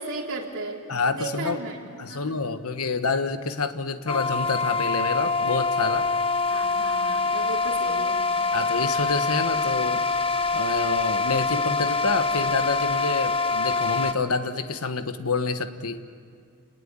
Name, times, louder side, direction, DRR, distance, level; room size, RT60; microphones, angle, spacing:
voice 1, 0.0-0.8 1.1-2.3 6.5-8.2, right 2 dB, 60° right, -2 dB, 3.6 m, -35 dB
voice 2, 0.9-1.6 2.0-6.1 8.5-10.0 10.5-16.0, left 4 dB, 70° left, 9 dB, 1.3 m, -27 dB
sound 1, 4.1-14.1, left 4 dB, 25° left, 1.0 m, -25 dB
29.0 x 19.5 x 8.8 m, 2.2 s
head